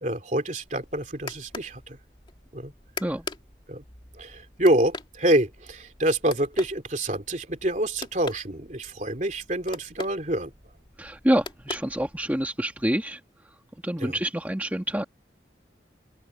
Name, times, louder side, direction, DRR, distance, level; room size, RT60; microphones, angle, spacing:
voice 1, 0.0-2.0 2.5-2.7 3.7-3.8 4.1-10.5 14.0-14.2, right 1 dB, 40° right, 3.0 m, -26 dB
sound 1, 0.6-12.5, left 3 dB, 25° left, 2.4 m, -43 dB
voice 2, 11.0-13.2 13.8-15.0, equal, 10° right, 1.6 m, -27 dB
open air
head